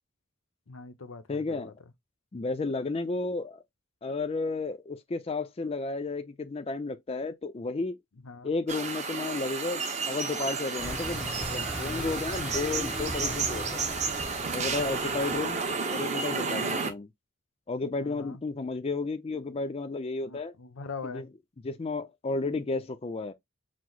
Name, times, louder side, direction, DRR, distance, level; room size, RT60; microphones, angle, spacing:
voice 1, 0.7-1.7 8.2-8.5 15.0-15.1 16.6-16.9 18.0-18.4 20.2-21.2, left 4 dB, 90° left, 0.7 m, -42 dB
voice 2, 1.3-1.7 2.3-3.6 4.0-8.0 8.4-13.9 14.5-17.1 17.7-20.5 21.0-21.3 21.6-23.3, left 3 dB, 30° left, 0.4 m, -33 dB
sound 1, 8.7-16.9, right 4 dB, 35° right, 0.8 m, -32 dB
sound 2, 10.8-15.8, equal, 5° right, 0.8 m, -38 dB
4.7 x 2.0 x 3.9 m
head